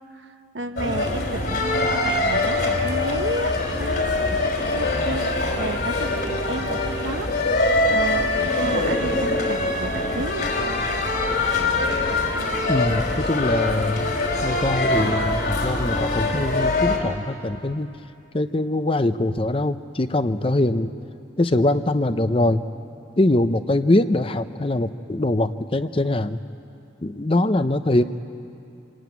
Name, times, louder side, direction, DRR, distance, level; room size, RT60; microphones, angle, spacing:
voice 1, 0.1-5.3 5.6-10.5, right 2 dB, 80° right, 7 dB, 1.2 m, -32 dB
sound 1, 0.8-17.0, left 2 dB, 55° left, 3.1 m, -23 dB
voice 2, 12.7-14.0 14.4-17.9 18.3-20.9 21.4-22.6 23.2-26.4 27.0-28.0, left 1 dB, 30° left, 11 dB, 0.6 m, -22 dB
26.5 x 20.5 x 9.4 m, 2.6 s
head